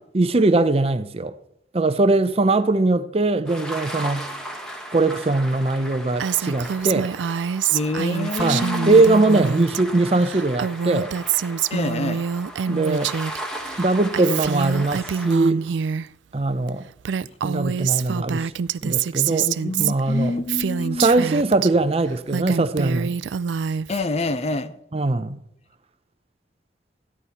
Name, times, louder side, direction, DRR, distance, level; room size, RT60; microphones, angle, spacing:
voice 1, 0.1-1.3 1.7-4.3 4.9-7.1 8.4-11.1 12.7-13.1 13.8-15.6 16.3-16.9 17.4-18.5 18.8-19.5 19.8-20.3 21.0-23.2 24.9-25.4, right 2 dB, 35° right, 0.6 m, -21 dB
sound 1, 3.5-15.4, right 1 dB, 5° left, 1.3 m, -36 dB
Female speech woman speaking, 6.2-9.8 10.1-13.4 13.7-16.1 16.7-16.8 17.0-21.7 22.1-24.0, right 7 dB, 80° right, 0.4 m, -26 dB
voice 2, 7.7-9.0 11.7-12.2 19.4-21.2 23.9-24.7, left 2 dB, 35° left, 0.6 m, -27 dB
13.5 x 11.0 x 4.2 m
head